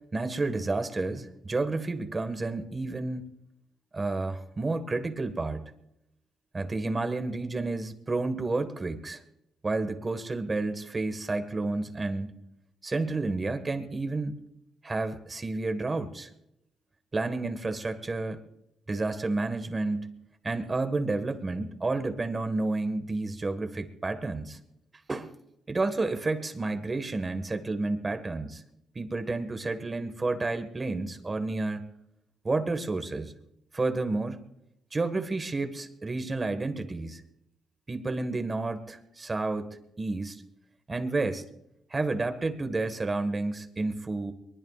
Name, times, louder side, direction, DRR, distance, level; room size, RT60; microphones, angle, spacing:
voice 1, 0.1-3.2 3.9-5.7 6.5-9.2 9.6-12.3 12.8-14.4 14.8-16.3 17.1-18.4 18.9-20.1 20.4-24.6 25.1-25.3 25.7-28.6 28.9-31.9 32.4-33.3 33.7-34.4 34.9-37.2 37.9-40.4 40.9-41.4 41.9-44.3, right 3 dB, 25° right, 9 dB, 1.7 m, -30 dB
23.0 x 20.5 x 2.5 m, 0.82 s
cardioid pair, 90°, 0 cm